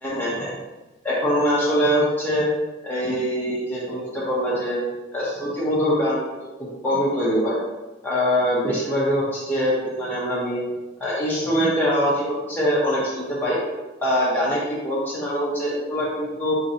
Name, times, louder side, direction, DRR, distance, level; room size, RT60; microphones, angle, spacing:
voice 1, 0.0-0.5 1.0-2.5 2.8-4.8 5.1-6.2 6.6-7.6 8.0-10.6 11.0-13.6 14.0-16.5, equal, 10° left, -8 dB, 0.9 m, -23 dB
3.9 x 3.0 x 2.7 m, 1.1 s
head